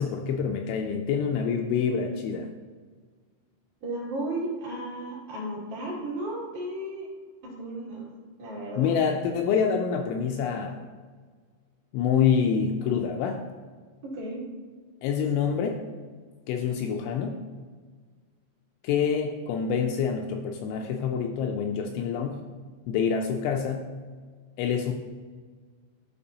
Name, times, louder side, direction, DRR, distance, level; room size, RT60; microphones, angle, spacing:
voice 1, 0.0-2.5 8.8-10.8 11.9-13.4 15.0-15.8 16.5-17.4 18.8-22.4 22.9-23.9 24.6-24.9, left 7 dB, 85° left, 2 dB, 2.8 m, -26 dB
voice 2, 3.8-7.1 7.4-8.1 8.4-9.0 14.0-14.4, right 1 dB, 55° right, -7 dB, 3.3 m, -34 dB
13.5 x 5.2 x 2.8 m, 1.5 s
omnidirectional pair, 5.7 m